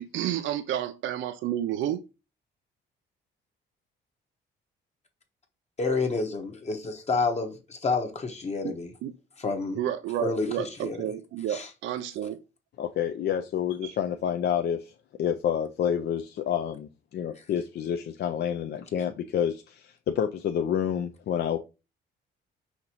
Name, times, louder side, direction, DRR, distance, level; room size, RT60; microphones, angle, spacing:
voice 1, 0.0-2.0 8.6-8.7 9.0-9.1 9.7-12.4 13.8-14.0, right 11 dB, 75° right, 0.4 m, -31 dB
voice 2, 5.8-8.9 9.4-9.8 10.2-11.0 11.5-11.7, left 4 dB, 35° left, 0.9 m, -29 dB
voice 3, 12.8-14.8 15.2-19.7 20.1-21.6, left 9 dB, 60° left, 0.4 m, -28 dB
5.7 x 2.7 x 2.9 m
cardioid pair, 90°, 20 cm